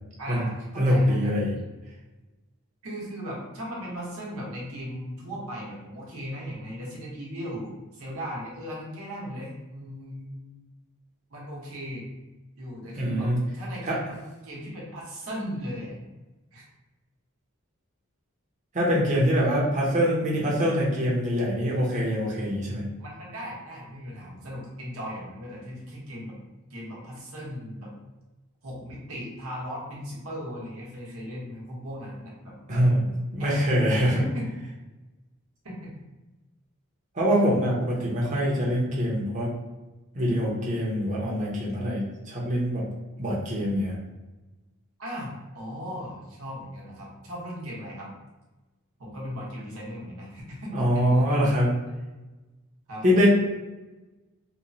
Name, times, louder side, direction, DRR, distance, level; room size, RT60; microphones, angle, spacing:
voice 1, 0.2-1.4 2.8-10.5 11.3-12.0 12.6-14.1 14.4-16.0 16.5-16.6 23.0-26.4 26.7-27.9 28.6-32.6 33.4-33.6 34.1-34.5 35.6-36.0 45.0-48.1 49.0-51.5 52.9-53.3, equal, 75° right, -4 dB, 0.9 m, -37 dB
voice 2, 0.8-1.5 13.0-13.4 13.8-14.0 18.7-22.9 32.7-34.2 37.1-39.5 40.1-42.8 43.2-44.0 50.7-51.7 53.0-53.3, equal, 35° right, -5 dB, 0.7 m, -24 dB
3.0 x 2.1 x 2.6 m, 1.1 s
head